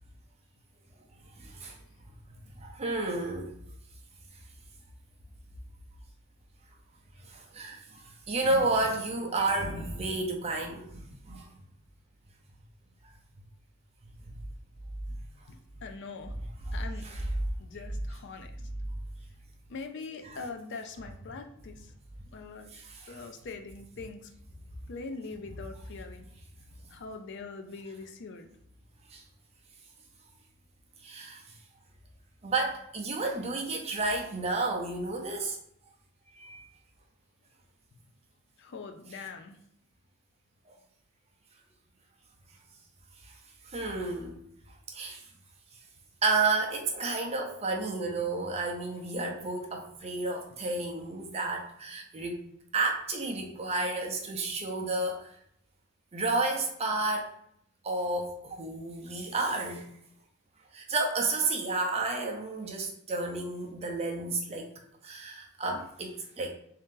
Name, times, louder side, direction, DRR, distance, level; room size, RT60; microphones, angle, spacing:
voice 1, 1.4-1.8 2.6-3.5 7.3-11.5 14.2-14.3 17.0-17.2 22.7-23.1 29.1-29.2 31.0-31.4 32.4-35.6 36.4-36.6 40.7-40.8 43.2-43.3 43.7-44.4 44.9-45.2 46.2-52.4 52.7-55.3 56.1-57.3 57.8-59.8 60.7-64.7 65.0-66.5, right 3 dB, 30° right, 1 dB, 0.6 m, -31 dB
voice 2, 15.5-16.4 16.7-17.1 17.6-18.5 19.7-21.9 22.3-22.7 23.1-24.3 24.9-26.3 26.9-28.5 38.6-39.6, left 4 dB, 55° left, 6 dB, 0.4 m, -42 dB
3.7 x 2.8 x 3.6 m, 0.72 s
head